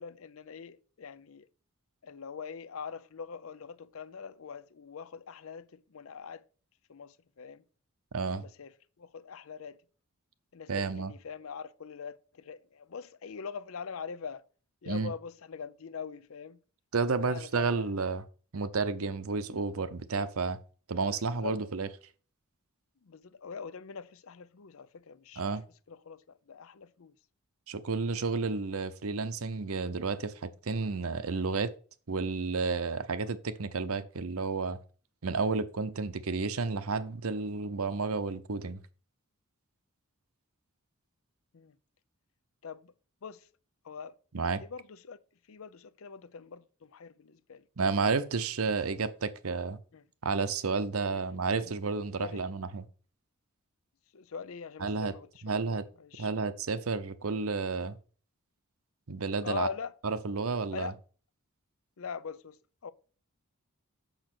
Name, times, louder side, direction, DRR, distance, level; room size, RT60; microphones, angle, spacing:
voice 1, 0.0-1.5 2.0-6.4 6.9-7.6 8.2-8.7 9.0-9.8 10.5-14.4 14.8-16.6 17.2-17.8 21.1-21.6 23.0-25.4 25.9-27.1 41.5-41.7 42.6-42.9 43.2-43.4 43.8-44.1 44.6-45.2 45.5-47.6 49.9-50.0 51.1-51.3 51.6-51.8 52.2-52.4 54.1-56.3 59.4-59.9 60.7-60.9 62.0-62.6 62.8-62.9, left 6 dB, 65° left, 0.5 m, -43 dB
voice 2, 8.1-8.5 10.7-11.1 14.9-15.1 16.9-18.2 18.5-20.6 20.9-21.9 25.4-25.6 27.7-31.7 32.1-34.8 35.2-38.8 44.3-44.6 47.8-49.8 50.2-52.8 54.8-55.2 55.4-55.9 56.2-58.0 59.1-59.7 60.0-60.9, right 4 dB, 70° right, 0.8 m, -31 dB
6.6 x 6.2 x 6.1 m
head